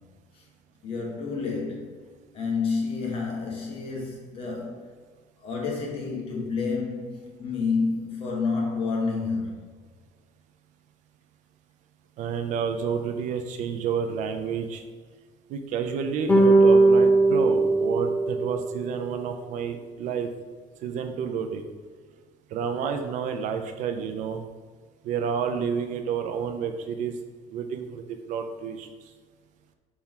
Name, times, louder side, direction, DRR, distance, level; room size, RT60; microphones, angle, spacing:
voice 1, 0.8-2.0 2.3-4.9 5.4-9.7, left 4 dB, 40° left, -1 dB, 1.3 m, -29 dB
voice 2, 12.2-14.8 15.5-20.3 20.8-21.7 22.5-24.4 25.0-27.1 27.5-28.9, right 6 dB, 60° right, 6 dB, 0.5 m, -30 dB
sound 1, 16.3-18.8, right 2 dB, 10° left, 0.7 m, -19 dB
5.9 x 4.3 x 3.7 m, 1.5 s
cardioid pair, 175°, 15 cm